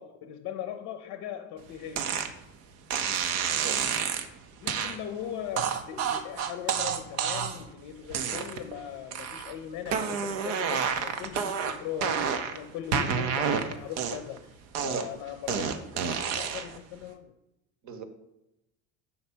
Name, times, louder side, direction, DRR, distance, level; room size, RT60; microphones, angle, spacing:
voice 1, 0.0-2.2 4.6-17.3, left 10 dB, 50° left, 8 dB, 0.6 m, -39 dB
sound 1, 2.0-2.3 2.9-4.3 4.7-5.0 5.6-7.7 8.1-8.7 9.1-9.5 9.9-12.6 12.9-14.4 14.7-16.8, right 7 dB, 75° right, 0.8 m, -29 dB
voice 2, 3.5-3.8 14.8-15.1 17.8-18.0, right 7 dB, 45° right, 8 dB, 1.0 m, -39 dB
5.7 x 3.2 x 5.6 m, 0.89 s
hypercardioid pair, 75°, 41 cm